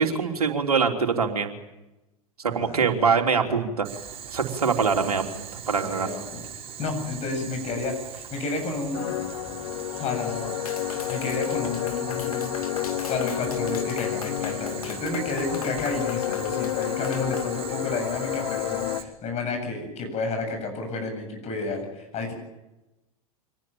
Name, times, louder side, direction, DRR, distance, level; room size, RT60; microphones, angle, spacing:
voice 1, 0.0-1.5 2.5-3.9 4.3-6.1, right 5 dB, 85° right, 3 dB, 3.5 m, -24 dB
voice 2, 2.5-2.9 5.7-6.4 6.8-9.1 9.9-10.6 11.1-12.5 13.0-22.3, left 3 dB, 35° left, 4 dB, 7.9 m, -31 dB
Boiling, 3.8-19.0, right 8 dB, 30° right, 5.8 m, -40 dB
sound 1, 8.9-19.0, left 14 dB, 60° left, 1.5 m, -30 dB
Clapping, 10.7-17.5, left 8 dB, 75° left, 2.4 m, -41 dB
25.5 x 19.5 x 8.9 m, 0.98 s
hypercardioid pair, 95°, 19 cm